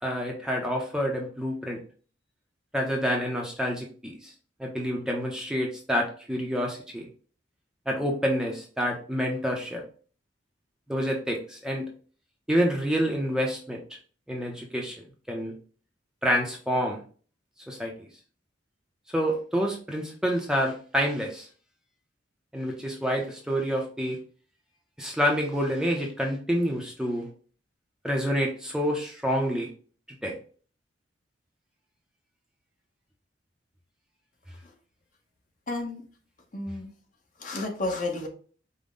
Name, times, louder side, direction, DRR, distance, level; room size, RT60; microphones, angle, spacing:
voice 1, 0.0-1.8 2.7-4.3 4.6-7.1 7.9-9.8 10.9-11.9 12.5-13.8 14.3-15.0 15.3-15.5 16.2-17.0 17.7-18.1 19.1-21.5 22.5-24.2 25.0-27.3 28.0-29.7 30.2-30.3, equal, 5° right, 0 dB, 0.6 m, -28 dB
voice 2, 35.7-36.1 36.5-36.9 37.4-38.3, left 2 dB, 45° left, 1 dB, 1.0 m, -31 dB
5.3 x 2.1 x 3.7 m, 0.41 s
head